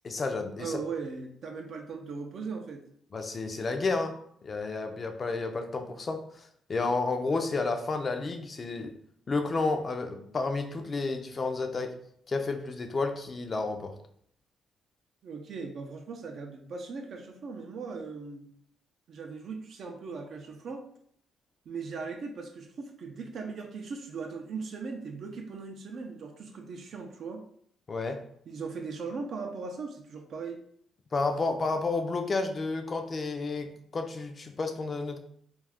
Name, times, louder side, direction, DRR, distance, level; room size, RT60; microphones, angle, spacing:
voice 1, 0.0-0.8 3.1-4.2 4.4-6.2 6.7-8.9 9.3-11.9 12.3-13.9 27.9-28.2 31.1-35.2, left 3 dB, 35° left, 6 dB, 0.4 m, -31 dB
voice 2, 0.6-2.8 15.2-18.5 19.1-20.8 21.7-27.5 28.5-30.6, right 4 dB, 60° right, 3 dB, 0.4 m, -39 dB
2.4 x 2.4 x 3.4 m, 0.65 s
cardioid pair, 90°, 0 cm